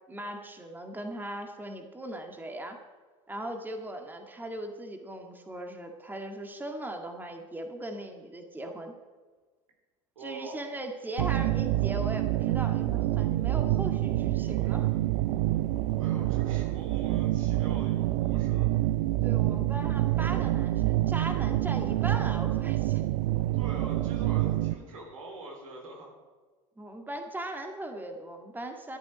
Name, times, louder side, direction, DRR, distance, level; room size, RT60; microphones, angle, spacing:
voice 1, 0.1-2.8 3.3-8.9 10.2-14.9 19.2-23.1 26.8-29.0, right 1 dB, 10° right, 4 dB, 1.9 m, -38 dB
voice 2, 10.1-10.6 15.9-18.7 23.5-26.1, right 1 dB, 85° right, 1 dB, 3.5 m, -44 dB
sound 1, 11.2-24.7, right 15 dB, 65° right, 0.6 m, -27 dB
13.0 x 11.5 x 5.1 m, 1.4 s
hypercardioid pair, 80°, 17 cm